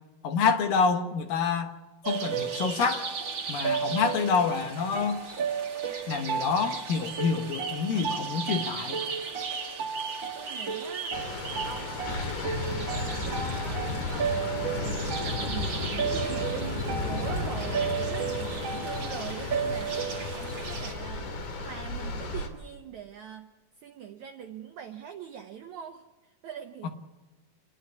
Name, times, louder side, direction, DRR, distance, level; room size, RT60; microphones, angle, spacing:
voice 1, 0.2-1.7 2.1-3.1 3.5-5.2 6.1-9.0 26.8-26.9, left 5 dB, 65° left, 5 dB, 2.7 m, -27 dB
sound 1, 2.0-20.9, right 6 dB, 40° right, 2.0 m, -33 dB
voice 2, 10.3-11.2 11.6-12.4 12.6-23.5 23.8-26.9, right 8 dB, 75° right, 4 dB, 1.8 m, -42 dB
sound 2, 11.1-22.5, left 3 dB, 85° left, 4.6 m, -33 dB
29.0 x 11.0 x 8.3 m, 1.2 s
omnidirectional pair, 4.7 m